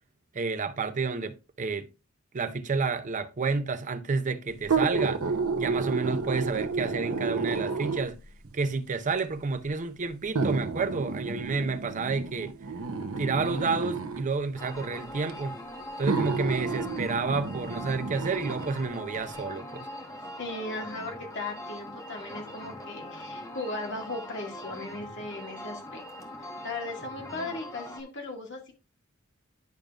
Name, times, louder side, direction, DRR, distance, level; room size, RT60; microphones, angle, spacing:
voice 1, 0.3-1.9 2.3-5.2 5.6-8.2 8.5-12.5 13.0-15.6 16.0-19.9, right 4 dB, 35° right, 0.6 m, -30 dB
sound 1, 4.6-8.3 9.2-9.3 10.4-14.3 15.3-15.4 16.0-18.7 19.1-19.2, right 4 dB, 75° right, 0.7 m, -31 dB
sound 2, 14.6-28.0, left 1 dB, 15° left, 1.0 m, -42 dB
voice 2, 20.4-26.0 26.4-28.7, left 2 dB, 55° left, 1.9 m, -37 dB
10.5 x 5.1 x 2.4 m
head